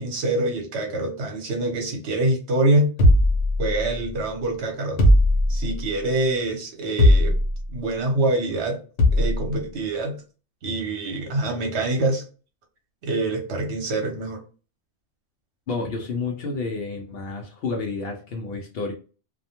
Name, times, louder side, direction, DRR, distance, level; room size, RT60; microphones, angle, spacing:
voice 1, 0.0-2.9 3.6-5.0 5.5-7.4 7.7-8.8 9.1-10.2 10.6-12.2 13.0-14.4, right 2 dB, 70° right, 1.0 m, -25 dB
sound 1, 3.0-4.1 5.0-5.9 7.0-7.7 9.0-9.5, left 1 dB, 85° left, 1.1 m, -18 dB
voice 2, 15.7-18.9, left 3 dB, 65° left, 0.7 m, -30 dB
2.4 x 2.1 x 2.8 m
omnidirectional pair, 1.2 m